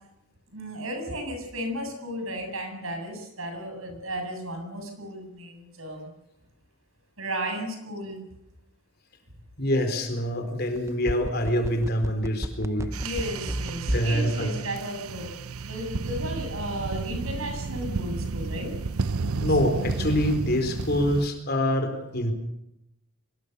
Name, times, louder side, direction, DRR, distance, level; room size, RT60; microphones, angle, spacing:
voice 1, 0.5-6.1 7.2-8.2 13.0-15.3 15.6-18.7, equal, 70° right, 4 dB, 7.7 m, -34 dB
voice 2, 9.6-12.9 13.8-14.5 19.4-22.3, equal, 45° left, 6 dB, 4.2 m, -25 dB
sound 1, 10.8-14.2 14.5-14.6, equal, 15° right, 0.8 m, -30 dB
sound 2, 12.9-21.3, right 4 dB, 85° right, 0.8 m, -32 dB
24.5 x 20.5 x 6.9 m, 0.85 s
head